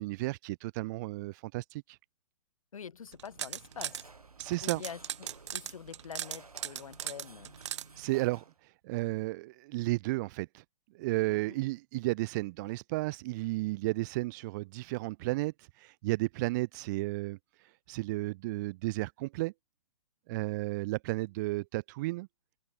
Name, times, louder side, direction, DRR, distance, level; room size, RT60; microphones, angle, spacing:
voice 1, 0.0-2.0 4.4-4.8 8.0-10.6 10.9-19.5 20.3-22.3, right 21 dB, 30° right, 0.6 m, -33 dB
voice 2, 2.7-4.1 4.6-7.5 11.3-11.6, left 7 dB, 70° left, 1.5 m, -46 dB
sound 1, 3.1-4.0 4.4-7.9, right 11 dB, 55° right, 0.9 m, -38 dB
sound 2, 3.3-8.6, right 3 dB, 90° right, 4.8 m, -55 dB
figure-of-eight pair, 125°, 18 cm